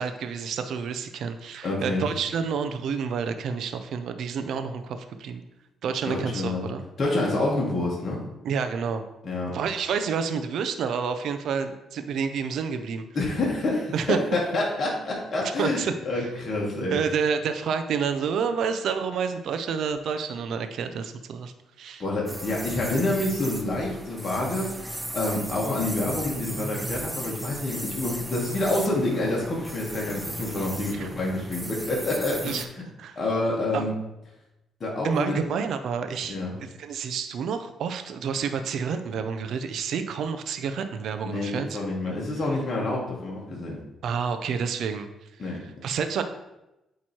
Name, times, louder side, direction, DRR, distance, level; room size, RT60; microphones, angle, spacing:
voice 1, 0.0-5.4 5.8-6.8 8.4-9.0 9.5-13.0 13.9-14.2 15.6-16.3 16.9-21.5 21.8-22.0 30.9-31.1 32.4-32.7 33.0-33.2 33.7-33.9 35.0-41.8 44.0-45.1 45.4-46.2, right 6 dB, 70° right, 8 dB, 0.5 m, -29 dB
voice 2, 1.6-2.1 6.0-6.7 7.0-8.2 9.2-9.5 13.1-17.0 22.0-32.6 33.1-33.9 34.8-35.5 36.3-36.5 41.2-43.8 45.4-45.6, left 2 dB, 40° left, -3 dB, 1.8 m, -27 dB
sound 1, 22.3-32.7, right 1 dB, 10° right, 0.6 m, -36 dB
8.5 x 3.1 x 4.3 m, 0.94 s
cardioid pair, 90°, 0 cm